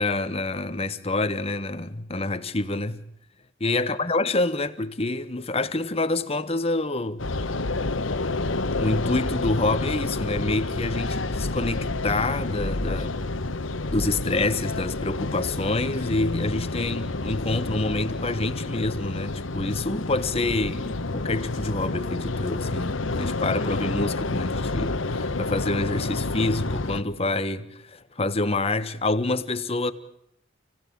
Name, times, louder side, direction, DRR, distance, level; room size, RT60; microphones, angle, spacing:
voice 1, 0.0-3.0 3.6-7.2 8.8-13.2 13.9-29.9, left 2 dB, 30° left, 1.2 m, -27 dB
sound 1, 7.2-27.0, left 2 dB, 75° left, 1.2 m, -29 dB
29.5 x 17.0 x 8.7 m
head